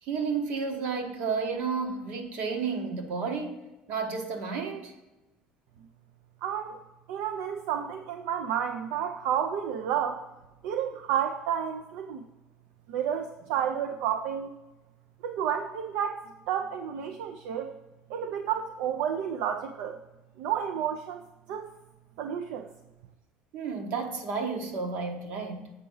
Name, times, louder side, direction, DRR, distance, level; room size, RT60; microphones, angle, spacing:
voice 1, 0.0-4.9 23.5-25.7, right 5 dB, 65° right, 4 dB, 1.4 m, -32 dB
voice 2, 6.4-6.8 7.1-10.2 10.6-12.3 12.9-14.5 15.2-17.7 18.1-20.0 20.4-21.2 21.5-21.7 22.2-22.7, right 9 dB, 80° right, 6 dB, 0.5 m, -31 dB
8.0 x 4.8 x 5.4 m, 1.0 s
cardioid pair, 140°, 3 cm